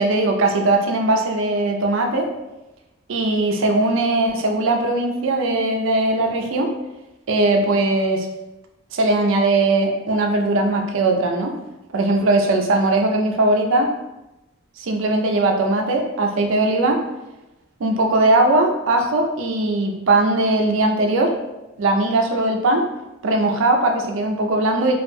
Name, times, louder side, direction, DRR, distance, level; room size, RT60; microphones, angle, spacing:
voice 1, 0.0-2.3 3.1-6.7 7.3-8.3 8.9-11.5 11.9-13.9 14.8-17.0 17.8-21.4 21.8-22.9 23.2-24.9, right 2 dB, 65° right, 3 dB, 0.4 m, -19 dB
2.3 x 2.1 x 3.1 m, 1.0 s
head